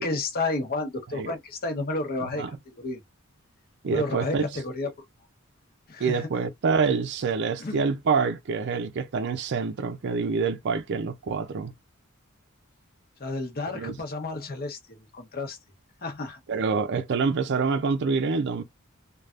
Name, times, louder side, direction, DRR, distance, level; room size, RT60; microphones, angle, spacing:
voice 1, 0.0-3.0 3.8-4.9 5.9-6.3 7.6-7.8 13.2-15.6 16.0-16.4, left 2 dB, 45° left, 1.0 m, -31 dB
voice 2, 3.8-4.4 6.0-11.7 13.7-14.0 16.5-18.6, right 5 dB, 55° right, 0.4 m, -26 dB
3.3 x 2.3 x 2.4 m
head